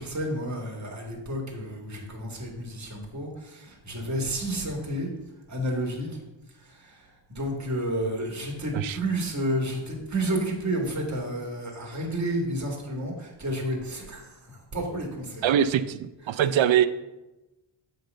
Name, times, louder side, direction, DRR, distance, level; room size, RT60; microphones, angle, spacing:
voice 1, 0.0-5.1 5.5-6.1 6.6-15.4, right 1 dB, 35° right, 0 dB, 1.9 m, -31 dB
voice 2, 15.4-16.9, right 10 dB, 70° right, 12 dB, 0.6 m, -23 dB
7.7 x 3.9 x 6.4 m, 1.0 s
wide cardioid pair, 105°, 49 cm